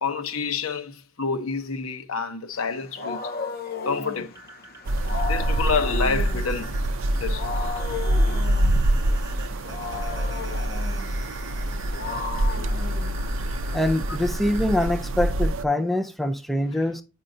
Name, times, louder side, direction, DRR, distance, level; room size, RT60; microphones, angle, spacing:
voice 1, 0.0-3.3 3.8-4.4 5.2-6.7 7.2-7.5 16.7-16.8, left 5 dB, 90° left, 0.8 m, -28 dB
Wild animals, 2.6-13.8, left 4 dB, 45° left, 0.7 m, -35 dB
sound 1, 4.2-14.9, right 3 dB, 15° right, 1.1 m, -44 dB
sound 2, 4.9-15.6, right 1 dB, 70° right, 0.5 m, -25 dB
voice 2, 13.7-17.0, left 1 dB, ahead, 0.4 m, -24 dB
8.9 x 5.5 x 2.6 m
head